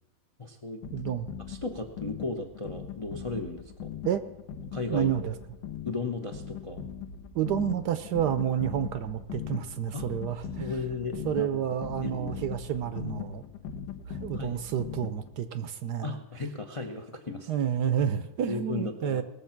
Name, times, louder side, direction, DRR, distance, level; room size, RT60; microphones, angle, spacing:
voice 1, 0.4-0.8 1.5-3.9 4.7-5.1 5.8-6.8 9.9-10.0 10.6-11.6 12.0-12.4 14.4-14.6 16.0-17.5 18.5-19.2, left 3 dB, 40° left, 3 dB, 0.4 m, -35 dB
sound 1, 0.8-15.5, left 8 dB, 75° left, 1.5 m, -40 dB
voice 2, 0.9-1.3 4.0-4.2 4.7-5.3 7.3-10.7 11.2-13.4 14.1-16.2 17.5-19.2, right 9 dB, 70° right, 12 dB, 1.1 m, -30 dB
19.5 x 7.1 x 5.8 m, 1.0 s
omnidirectional pair, 2.1 m